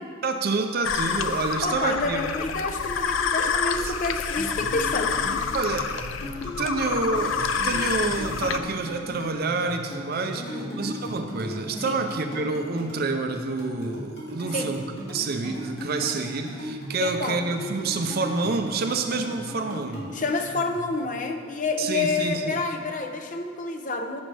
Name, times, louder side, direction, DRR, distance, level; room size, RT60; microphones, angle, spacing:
voice 1, 0.2-2.4 3.4-3.5 3.8-3.9 5.5-6.1 6.6-20.1 21.8-22.6, right 3 dB, 50° right, 6 dB, 0.5 m, -28 dB
sound 1, 0.8-8.6, left 6 dB, 85° left, 0.4 m, -28 dB
voice 2, 1.6-5.4 10.3-11.0 11.9-12.0 14.5-14.8 17.0-17.5 20.1-24.2, left 3 dB, 40° left, 5 dB, 0.7 m, -29 dB
sound 2, 4.4-20.9, left 1 dB, 55° left, 2.3 m, -37 dB
14.5 x 6.2 x 3.4 m, 2.3 s
head